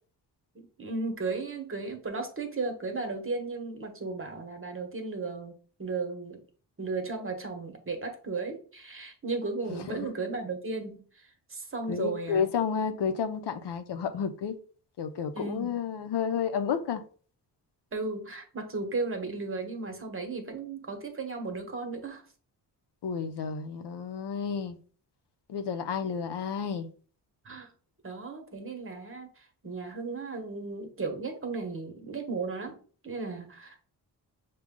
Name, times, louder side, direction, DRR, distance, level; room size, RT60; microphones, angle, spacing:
voice 1, 0.5-5.5 5.8-6.4 6.8-11.2 11.5-12.5 15.3-15.8 17.9-22.2 27.4-27.7 28.0-32.8 33.0-33.8, right 3 dB, 30° right, 1.1 m, -35 dB
voice 2, 9.7-10.1 11.9-14.6 15.0-17.0 23.0-24.8 25.5-26.9, left 7 dB, 75° left, 0.7 m, -31 dB
6.2 x 2.3 x 3.7 m
cardioid pair, 100°, 42 cm